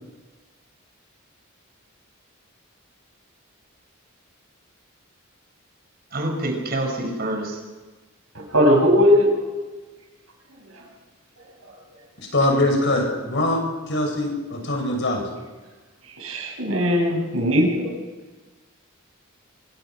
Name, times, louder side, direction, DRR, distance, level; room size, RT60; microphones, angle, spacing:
voice 1, 6.1-7.6, right 1 dB, 45° right, 3 dB, 5.9 m, -26 dB
voice 2, 8.3-9.5 10.7-10.9 11.4-11.7 16.0-17.9, equal, 75° right, 0 dB, 7.8 m, -20 dB
voice 3, 12.2-13.6 13.9-15.2, left 1 dB, 55° left, 2 dB, 7.0 m, -22 dB
25.0 x 22.5 x 6.1 m, 1.3 s
head